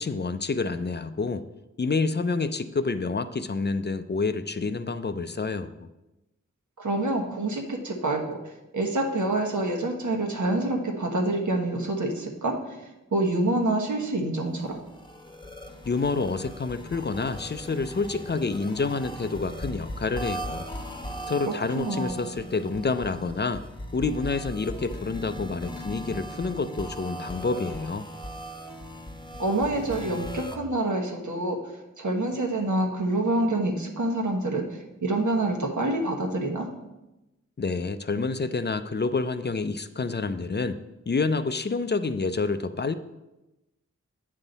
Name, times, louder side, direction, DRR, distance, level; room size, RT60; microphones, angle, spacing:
voice 1, 0.0-1.4 1.8-5.9 15.9-20.7 21.3-23.6 23.9-28.1 37.6-40.8 41.1-43.0, left 4 dB, 35° left, 11 dB, 0.4 m, -28 dB
voice 2, 6.8-8.4 8.7-14.8 21.4-22.3 29.4-31.6 32.0-36.7, right 2 dB, 80° right, 1 dB, 1.2 m, -27 dB
sound 1, 14.6-30.6, equal, 15° left, 0.9 m, -39 dB
8.2 x 5.6 x 4.0 m, 0.98 s
wide cardioid pair, 50°, 30 cm